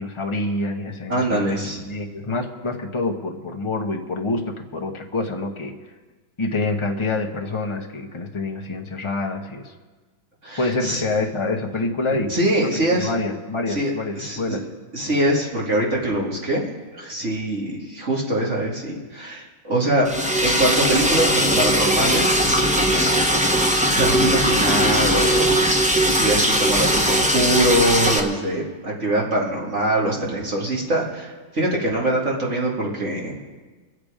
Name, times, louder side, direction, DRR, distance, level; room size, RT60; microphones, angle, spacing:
voice 1, 0.0-5.7 6.4-9.7 10.6-12.3 12.6-12.7 13.0-14.7, left 2 dB, 20° left, 2 dB, 0.8 m, -27 dB
voice 2, 1.1-1.8 10.4-11.0 12.3-13.1 13.7-13.9 14.2-14.6 14.9-16.6 16.9-23.3 23.6-25.6 26.0-33.4, right 1 dB, 35° right, -3 dB, 2.4 m, -23 dB
Liquid, 20.1-28.2, equal, 10° right, 0.4 m, -19 dB
23.5 x 8.2 x 5.1 m, 1.3 s
omnidirectional pair, 2.2 m